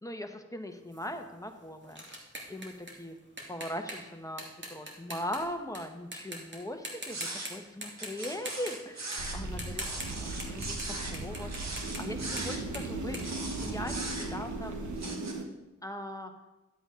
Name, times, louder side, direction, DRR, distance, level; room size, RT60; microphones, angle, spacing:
voice 1, 0.0-2.0 2.5-3.2 3.5-9.8 10.2-10.8 11.1-11.5 12.0-13.2 13.6-14.8 15.8-16.3, left 1 dB, 10° left, 5 dB, 1.2 m, -40 dB
sound 1, 0.9-5.8 6.1-6.6 6.8-7.5 7.8-14.1, right 1 dB, 40° right, 2.4 m, -43 dB
sound 2, 7.1-7.5 8.0-9.4 9.8-11.2 11.5-12.6 13.2-14.5 15.0-15.3, right 2 dB, 65° right, 1.6 m, -39 dB
sound 3, 9.2-15.4, right 2 dB, 90° right, 1.2 m, -37 dB
11.5 x 7.9 x 3.8 m, 1.1 s
cardioid pair, 55°, 29 cm